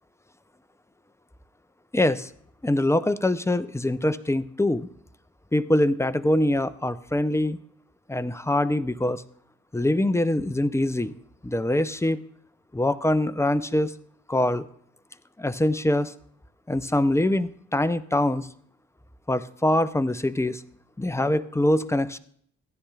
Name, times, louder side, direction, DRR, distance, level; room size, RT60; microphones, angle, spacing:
voice 1, 1.9-2.3 2.6-4.9 5.5-7.6 8.1-9.2 9.7-11.1 11.4-12.2 12.7-13.9 14.3-14.7 15.4-16.1 16.7-18.5 19.3-20.6 21.0-22.2, left 1 dB, 10° left, 13 dB, 0.5 m, -24 dB
14.5 x 10.0 x 2.4 m, 0.64 s
supercardioid pair, 50°, 34 cm